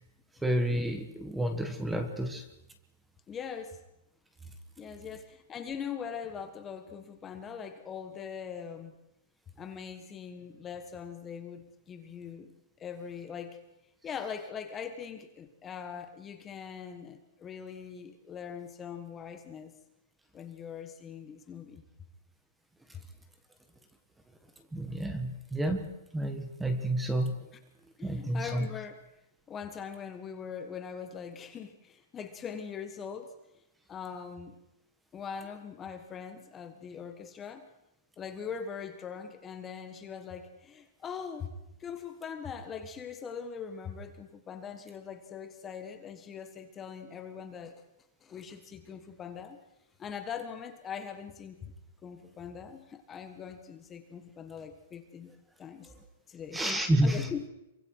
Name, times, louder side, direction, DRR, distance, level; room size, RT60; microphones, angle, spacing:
voice 1, 0.4-2.4 24.7-25.9 26.1-27.4 28.0-28.7 56.5-57.3, right 1 dB, 5° right, 7 dB, 1.5 m, -30 dB
voice 2, 3.3-3.8 4.8-8.9 9.6-12.5 12.8-13.6 14.0-19.7 20.3-21.8 28.0-29.0 29.5-33.3 33.9-34.6 35.1-37.7 38.2-41.5 41.8-47.8 48.2-49.6 50.0-51.7 52.0-55.3 55.6-55.9 56.3-56.6 57.0-57.5, left 7 dB, 15° left, 6 dB, 1.5 m, -41 dB
27.0 x 24.0 x 4.8 m, 0.87 s
hypercardioid pair, 170°, 0 cm